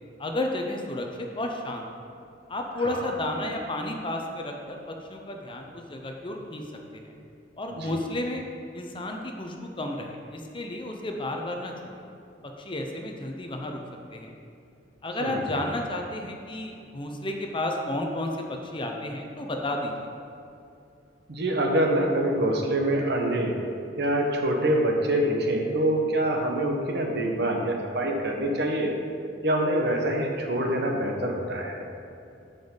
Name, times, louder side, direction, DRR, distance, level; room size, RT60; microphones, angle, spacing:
voice 1, 0.2-2.1 2.5-6.6 6.9-7.1 7.6-8.4 8.7-12.0 12.6-13.8 14.1-14.3 15.0-20.1, left 1 dB, 25° left, 2 dB, 0.8 m, -32 dB
voice 2, 15.2-15.7 21.3-23.6 24.0-28.9 29.4-31.8, right 1 dB, 60° right, 1 dB, 1.2 m, -25 dB
12.5 x 5.4 x 3.9 m, 2.6 s
head